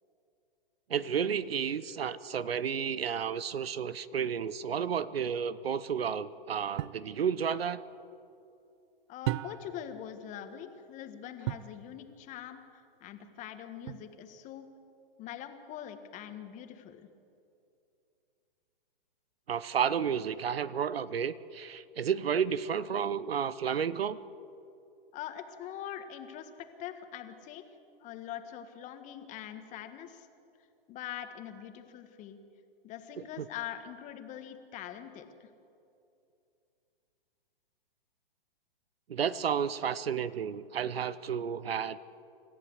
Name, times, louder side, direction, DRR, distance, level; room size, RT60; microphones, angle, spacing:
voice 1, 0.9-7.8 19.5-24.2 33.4-33.5 39.1-42.0, right 7 dB, 80° right, 17 dB, 0.9 m, -31 dB
sound 1, 6.8-7.1 9.2-9.9 11.4-11.8 13.9-14.4, right 16 dB, 30° right, 0.4 m, -35 dB
voice 2, 9.1-14.7 15.2-17.1 25.1-26.5 26.8-27.6 28.0-30.3 30.9-32.4 32.8-35.5, left 10 dB, 25° left, 8 dB, 1.6 m, -43 dB
26.5 x 14.0 x 8.1 m, 2.6 s
hypercardioid pair, 135°, 29 cm